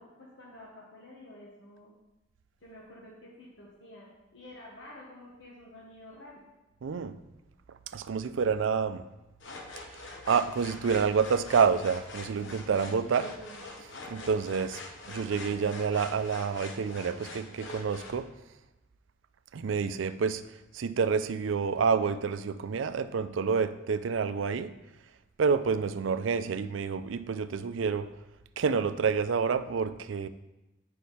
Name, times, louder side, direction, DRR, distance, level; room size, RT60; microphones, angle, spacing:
voice 1, 0.0-1.9 2.6-6.5 12.9-13.7, left 1 dB, 75° left, -4 dB, 1.4 m, -50 dB
voice 2, 6.8-7.2 7.9-9.0 10.3-13.3 14.1-14.8 15.1-18.3 19.5-20.4 20.7-24.7 25.4-28.1 28.6-30.3, right 5 dB, 90° right, 12 dB, 0.4 m, -28 dB
sound 1, 9.4-18.2, left 2 dB, 90° left, 1.0 m, -44 dB
8.4 x 5.4 x 4.2 m, 1.0 s
head